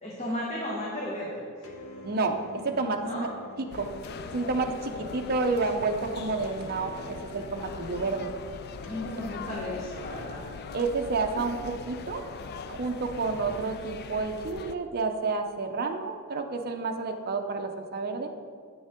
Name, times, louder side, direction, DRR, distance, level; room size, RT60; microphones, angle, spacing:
voice 1, 0.0-1.7 3.0-3.3 8.9-10.4, left 1 dB, 30° left, -5 dB, 1.2 m, -34 dB
sound 1, 1.6-11.2, left 3 dB, 65° left, 0.9 m, -47 dB
voice 2, 2.0-2.4 2.6-3.3 3.6-3.9 4.3-8.3 10.7-12.2 12.7-18.3, right 3 dB, 45° right, 4 dB, 0.6 m, -30 dB
sound 2, 3.7-14.7, left 5 dB, 45° left, 0.3 m, -41 dB
8.8 x 7.0 x 3.7 m, 2.2 s
head